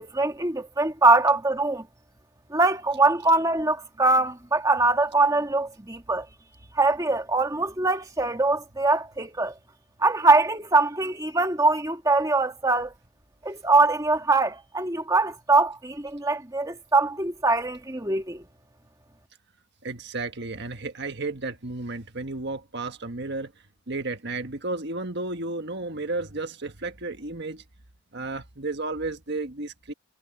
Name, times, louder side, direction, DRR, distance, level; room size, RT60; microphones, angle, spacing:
voice 1, 0.0-1.9 2.5-6.3 6.7-9.5 10.0-12.9 13.4-18.4, right 3 dB, 15° right, 1.8 m, -22 dB
voice 2, 19.8-23.5 23.9-27.6 28.1-29.9, right 2 dB, 50° right, 1.5 m, -33 dB
head